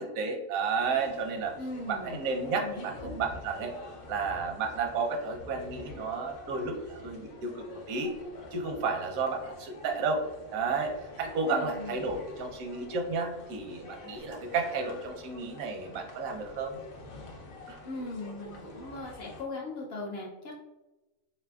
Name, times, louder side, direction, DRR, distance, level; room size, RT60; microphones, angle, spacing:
voice 1, 0.0-1.5 1.9-3.7 4.1-8.2 8.5-10.2 10.5-16.8 17.7-17.8, right 4 dB, 85° right, 3 dB, 1.1 m, -32 dB
sound 1, 0.8-19.4, left 2 dB, 85° left, 1.1 m, -48 dB
voice 2, 1.6-2.2 2.6-3.2 11.5-12.1 17.8-20.6, left 2 dB, 60° left, -1 dB, 0.7 m, -39 dB
3.8 x 3.3 x 2.2 m, 1.1 s
omnidirectional pair, 1.4 m